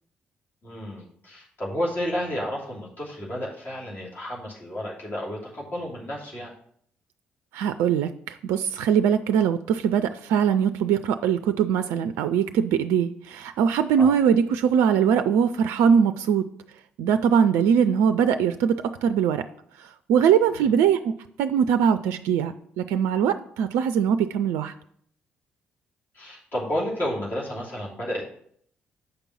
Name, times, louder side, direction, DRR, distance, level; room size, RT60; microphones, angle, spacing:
voice 1, 0.6-6.5 14.0-14.1 20.5-20.7 26.1-28.2, equal, 40° left, -5 dB, 2.8 m, -31 dB
voice 2, 7.5-16.4 17.0-19.4 19.8-21.1 21.4-24.7, right 8 dB, 60° right, 10 dB, 0.4 m, -22 dB
6.8 x 5.2 x 5.8 m, 0.63 s
figure-of-eight pair, 45°, 5 cm